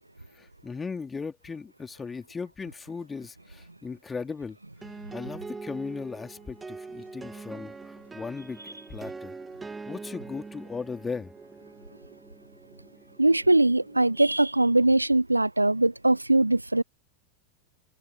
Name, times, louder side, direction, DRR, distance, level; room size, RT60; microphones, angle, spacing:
voice 1, 0.3-4.6 5.1-9.4 9.9-11.3, left 5 dB, 15° left, 3.4 m, -37 dB
sound 1, 4.8-14.4, right 4 dB, 10° right, 2.9 m, -43 dB
voice 2, 13.2-16.8, right 2 dB, 85° right, 0.7 m, -21 dB
figure-of-eight pair, 90°, 0 cm